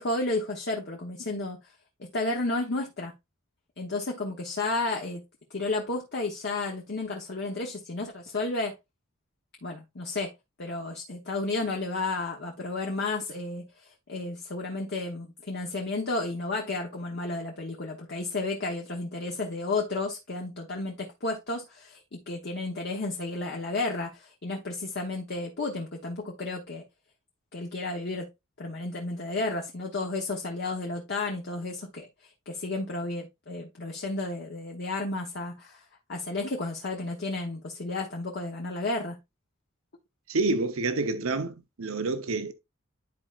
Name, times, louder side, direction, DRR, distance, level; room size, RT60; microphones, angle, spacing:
voice 1, 0.0-1.7 2.0-3.1 3.8-5.2 5.5-8.7 9.6-10.3 10.6-26.8 27.5-28.3 28.6-32.1 32.5-35.8 36.1-39.2, left 2 dB, 55° left, 1.0 m, -32 dB
voice 2, 40.3-42.5, right 3 dB, 75° right, 0.9 m, -28 dB
10.5 x 4.3 x 2.4 m
head